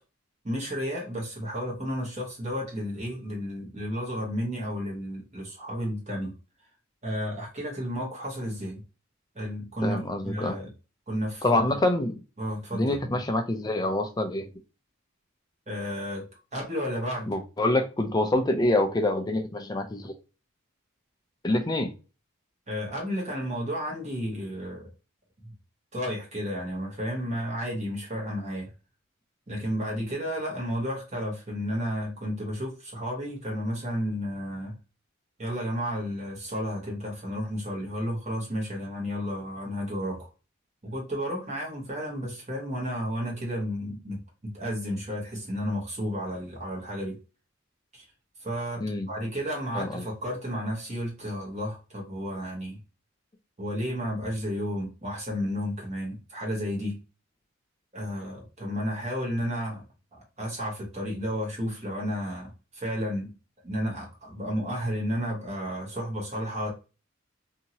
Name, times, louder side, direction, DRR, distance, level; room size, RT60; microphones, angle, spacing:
voice 1, 0.4-6.3 7.0-8.8 9.3-10.7 11.1-11.6 12.4-13.2 15.7-16.2 16.5-17.3 22.7-24.9 25.4-25.5 25.9-28.7 29.5-34.7 35.4-40.3 40.8-47.2 47.9-48.1 48.4-52.8 53.6-57.0 57.9-59.8 60.1-63.3 63.6-66.7, equal, 30° right, 0.9 m, -32 dB
voice 2, 9.8-10.6 11.4-12.2 12.7-14.5 17.3-20.1 21.4-21.9 48.8-49.1 49.8-50.0, left 1 dB, 20° left, 0.4 m, -26 dB
2.8 x 2.7 x 2.7 m
head